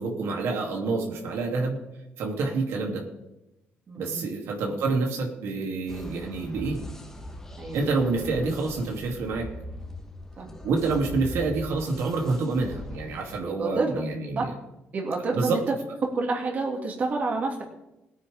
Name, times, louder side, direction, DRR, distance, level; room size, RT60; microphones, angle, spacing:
voice 1, 0.0-1.8 2.2-3.0 4.0-6.8 7.7-9.5 10.6-14.5 15.3-15.6, right 3 dB, 85° right, 0 dB, 2.8 m, -27 dB
voice 2, 3.9-4.2 7.6-7.9 10.4-10.5 13.6-13.9 14.4-14.5 14.9-15.6 16.1-17.6, right 3 dB, 40° right, 0 dB, 2.4 m, -28 dB
sound 1, 5.9-13.4, left 1 dB, 10° left, 1.3 m, -40 dB
20.0 x 9.5 x 3.6 m, 0.92 s
cardioid pair, 150°, 4 cm